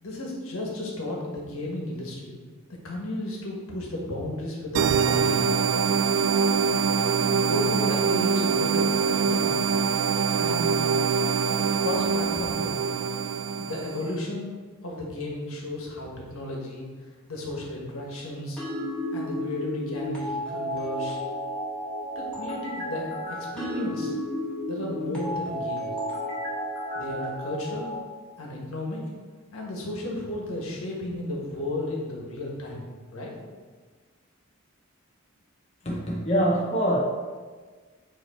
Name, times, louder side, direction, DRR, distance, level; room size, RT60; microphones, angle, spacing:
voice 1, 0.0-2.4 2.7-5.5 6.9-9.5 10.4-10.9 11.8-12.7 13.6-14.5 14.8-16.9 17.3-18.6 19.1-21.2 22.1-24.1 24.7-25.9 26.9-27.9 28.4-29.0 29.5-33.3, left 1 dB, 80° left, -2 dB, 1.4 m, -34 dB
sound 1, 4.7-14.1, right 6 dB, 70° right, 0.3 m, -24 dB
sound 2, 18.6-27.9, equal, 5° left, 1.5 m, -32 dB
voice 2, 35.8-37.0, equal, 30° left, -2 dB, 0.7 m, -24 dB
7.8 x 3.0 x 4.3 m, 1.5 s
head